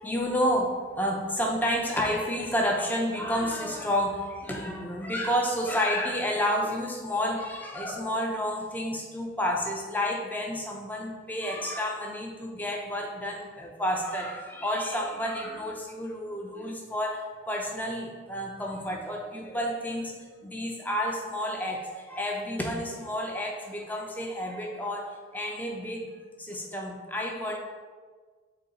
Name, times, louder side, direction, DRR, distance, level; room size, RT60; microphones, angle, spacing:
voice 1, 0.0-26.1 26.4-27.6, equal, 10° left, 1 dB, 0.4 m, -30 dB
4.0 x 3.1 x 4.0 m, 1.5 s
head